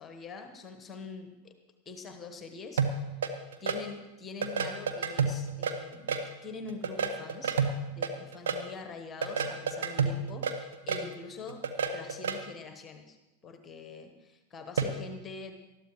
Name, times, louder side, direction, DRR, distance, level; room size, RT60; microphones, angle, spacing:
voice 1, 0.0-1.5 1.8-2.8 3.6-7.6 7.9-11.6 11.9-13.2 13.4-15.5, left 4 dB, 20° left, 7 dB, 1.2 m, -44 dB
sound 1, 2.8-3.8 4.4-6.3 6.7-8.6 9.2-11.1 11.5-12.4 14.8-15.0, right 5 dB, 60° right, 1.2 m, -30 dB
20.0 x 13.5 x 3.1 m, 1.0 s
figure-of-eight pair, 90°, 0 cm